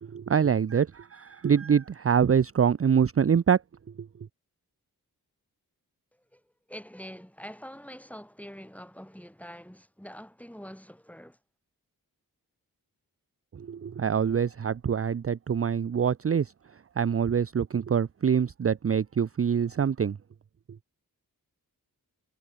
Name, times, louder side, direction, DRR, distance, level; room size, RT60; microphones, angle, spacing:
voice 1, 0.0-3.6 4.0-4.1 13.5-16.5 17.0-20.2, right 7 dB, 40° right, 0.5 m, -25 dB
voice 2, 6.7-11.4, equal, 5° left, 5.9 m, -45 dB
wide cardioid pair, 65°, 37 cm